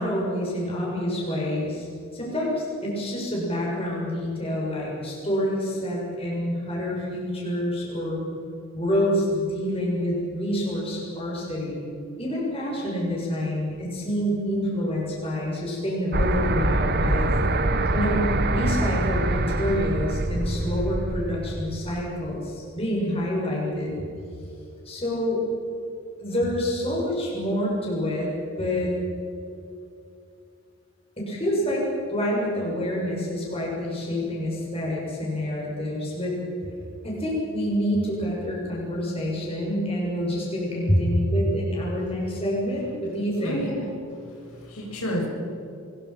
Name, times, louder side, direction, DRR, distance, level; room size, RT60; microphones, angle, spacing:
voice 1, 0.0-1.9 2.1-8.2 8.7-11.8 12.2-17.3 17.9-24.0 24.8-25.4 26.2-28.3 28.6-28.9 31.2-31.8 32.1-36.3 37.0-43.6, equal, 25° left, -4 dB, 6.8 m, -27 dB
sound 1, 16.1-22.0, right 2 dB, 45° right, 1.3 m, -24 dB
voice 2, 43.4-45.3, equal, 85° left, -1 dB, 6.8 m, -31 dB
24.5 x 22.5 x 6.0 m, 2.6 s
head